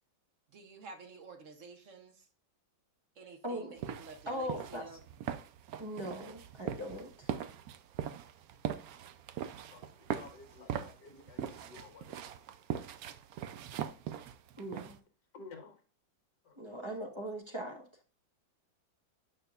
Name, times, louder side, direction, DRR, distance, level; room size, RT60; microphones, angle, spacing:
voice 1, 0.5-2.3 3.2-5.0, right 4 dB, 50° right, 6 dB, 1.1 m, -51 dB
voice 2, 3.4-3.7 4.3-4.8 5.8-7.3 14.6-15.0 16.6-17.9, equal, 20° right, 2 dB, 0.8 m, -40 dB
sound 1, 3.8-15.0, right 9 dB, 90° right, 0.8 m, -41 dB
voice 3, 9.7-12.4 15.3-15.8 16.4-16.6, left 4 dB, 60° left, 4 dB, 1.8 m, -52 dB
8.6 x 5.6 x 2.4 m, 0.39 s
omnidirectional pair, 2.1 m